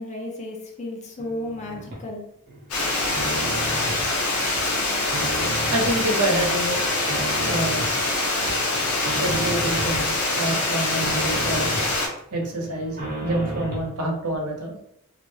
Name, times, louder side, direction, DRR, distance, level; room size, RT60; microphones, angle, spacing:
voice 1, 0.0-2.3, left 1 dB, 35° left, 0 dB, 0.6 m, -33 dB
sound 1, 1.2-2.0 2.5-4.0 4.4-6.0 6.4-8.0 8.4-10.0 10.3-11.9 12.3-13.9, right 1 dB, 45° right, 0.8 m, -34 dB
Water, 2.7-12.1, left 2 dB, 85° left, 0.7 m, -24 dB
voice 2, 5.7-6.8 7.4-7.8 9.2-11.7 12.3-14.8, right 1 dB, 90° right, 1 dB, 0.7 m, -27 dB
2.4 x 2.1 x 3.1 m, 0.73 s
head